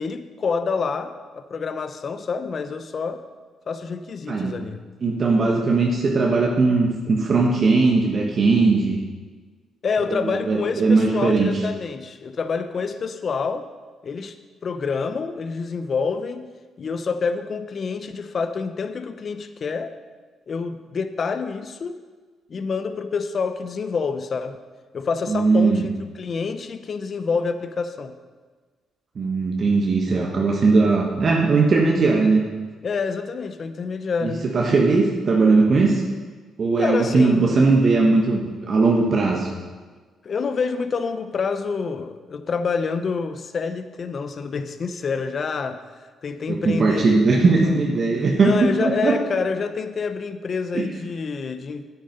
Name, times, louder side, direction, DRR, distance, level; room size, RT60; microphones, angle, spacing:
voice 1, 0.0-3.2 3.7-4.8 9.8-13.7 14.0-14.4 14.6-16.5 16.8-19.9 20.5-22.0 22.5-24.6 24.9-28.1 32.8-34.4 36.8-37.7 40.2-45.8 46.2-47.8 48.4-51.9, left 5 dB, 45° left, 10 dB, 0.7 m, -27 dB
voice 2, 5.0-9.0 10.1-11.5 25.3-25.9 29.1-32.4 34.2-36.0 36.6-38.4 38.7-39.5 46.5-48.5 48.8-49.1 50.7-50.8, right 3 dB, 45° right, -1 dB, 1.5 m, -19 dB
9.5 x 8.8 x 5.4 m, 1.4 s
cardioid pair, 90°, 0 cm